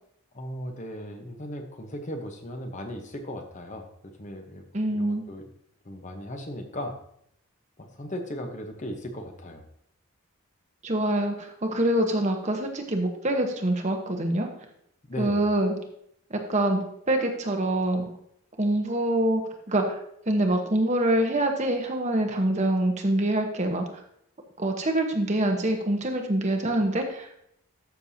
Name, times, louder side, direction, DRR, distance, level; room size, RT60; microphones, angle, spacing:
voice 1, 0.3-4.6 4.9-5.4 5.8-6.9 7.8-9.6 15.1-15.4, equal, 35° left, 4 dB, 0.9 m, -37 dB
voice 2, 4.7-5.2 10.8-14.5 15.2-15.7 16.3-18.0 18.6-19.4 19.7-20.0 20.3-23.9 24.6-27.3, right 1 dB, 35° right, 3 dB, 1.0 m, -25 dB
13.0 x 6.6 x 2.8 m, 0.72 s
head